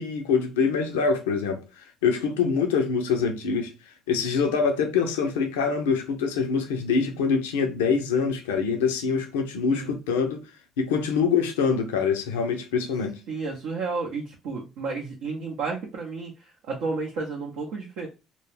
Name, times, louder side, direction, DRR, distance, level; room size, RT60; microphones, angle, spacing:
voice 1, 0.0-1.6 2.0-3.7 4.1-10.4 10.8-13.1, left 5 dB, 90° left, 0.4 m, -24 dB
voice 2, 13.3-18.1, right 4 dB, 75° right, 0.5 m, -32 dB
2.2 x 2.0 x 3.1 m
hypercardioid pair, 60°, 0 cm